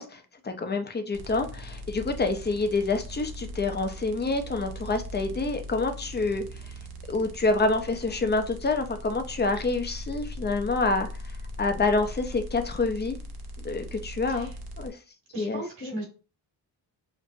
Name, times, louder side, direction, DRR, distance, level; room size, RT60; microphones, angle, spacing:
voice 1, 0.0-6.4 7.1-11.1 11.6-13.2 13.6-14.5 14.8-15.0 15.4-15.9, left 3 dB, 25° left, 7 dB, 0.6 m, -27 dB
sound 1, 1.1-14.9, equal, 65° right, 0.8 m, -40 dB
voice 2, 15.3-16.1, right 1 dB, 80° right, 0 dB, 1.8 m, -37 dB
5.2 x 2.1 x 2.6 m, 0.34 s
cardioid pair, 85°, 41 cm